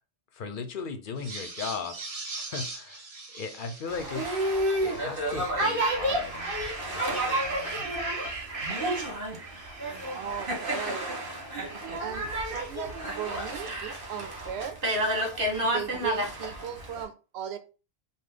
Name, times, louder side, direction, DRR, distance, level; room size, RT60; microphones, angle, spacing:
voice 1, 0.3-2.0 2.4-3.0 3.3-4.4 4.8-6.5 6.9-7.8, left 5 dB, 55° left, 8 dB, 0.8 m, -37 dB
sound 1, 1.2-5.1 5.5-14.1, right 3 dB, 35° right, 0.9 m, -40 dB
Boat Water vehicle, 3.9-17.0, right 1 dB, 60° right, 1.4 m, -30 dB
voice 2, 9.9-11.2 12.0-14.8 15.5-17.6, right 9 dB, 90° right, 8 dB, 0.9 m, -37 dB
5.0 x 2.4 x 3.7 m, 0.33 s
omnidirectional pair, 1.1 m